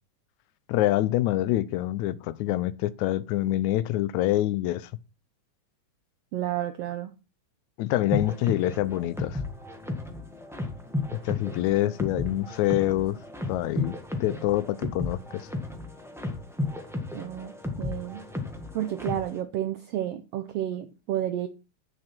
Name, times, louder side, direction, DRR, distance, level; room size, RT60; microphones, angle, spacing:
voice 1, 0.7-4.9 7.8-9.4 11.2-13.2 13.5-15.5, left 15 dB, 85° left, 2.0 m, -26 dB
voice 2, 6.3-7.1 17.1-17.5 17.8-18.2 18.7-21.5, right 12 dB, 75° right, 1.6 m, -31 dB
sound 1, 8.1-19.4, left 2 dB, ahead, 0.6 m, -34 dB
10.5 x 6.7 x 4.4 m
omnidirectional pair, 3.3 m